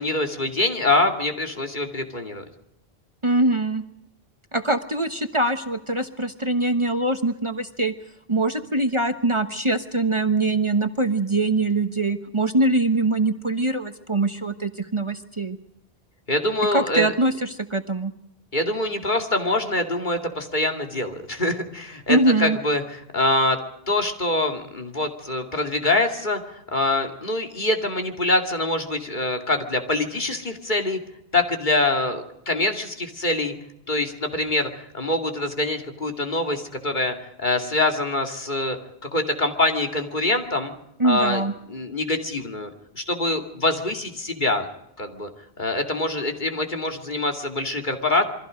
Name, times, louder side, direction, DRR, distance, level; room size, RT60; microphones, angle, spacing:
voice 1, 0.0-2.4 16.3-17.1 18.5-23.6 23.9-31.0 31.3-33.5 33.9-34.7 34.9-38.8 39.1-40.7 41.0-44.7 45.0-45.3 45.6-48.2, left 2 dB, 50° left, 4 dB, 2.6 m, -24 dB
voice 2, 3.2-3.8 4.5-7.9 8.3-15.6 16.7-18.1 22.1-22.6 41.0-41.5, right 2 dB, 30° right, 7 dB, 1.2 m, -23 dB
28.0 x 23.5 x 5.2 m, 0.81 s
omnidirectional pair, 1.0 m